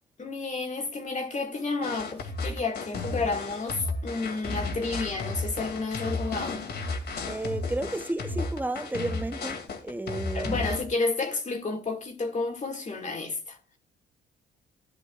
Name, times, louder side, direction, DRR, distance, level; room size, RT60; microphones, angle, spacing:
voice 1, 0.2-6.6 10.3-13.6, left 3 dB, 35° left, 2.2 m, -31 dB
sound 1, 1.8-10.8, left 3 dB, 55° left, 2.4 m, -33 dB
voice 2, 7.2-10.6, right 2 dB, 10° right, 0.8 m, -32 dB
14.0 x 10.5 x 2.4 m
cardioid pair, 90°, 20 cm